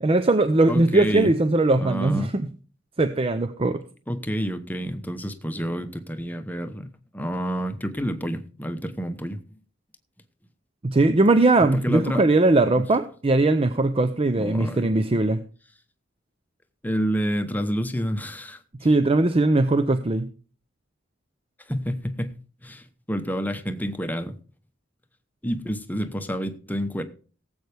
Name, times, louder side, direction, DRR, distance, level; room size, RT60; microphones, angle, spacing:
voice 1, 0.0-2.5 3.0-3.8 10.8-15.4 18.8-20.3, right 2 dB, 30° right, 0.5 m, -20 dB
voice 2, 0.7-1.3 1.8-2.3 4.1-6.9 7.1-9.4 11.7-12.3 14.3-14.9 16.8-18.6 21.7-22.4 22.6-24.4 25.4-27.0, equal, 10° left, 0.9 m, -29 dB
18.0 x 8.0 x 3.4 m
head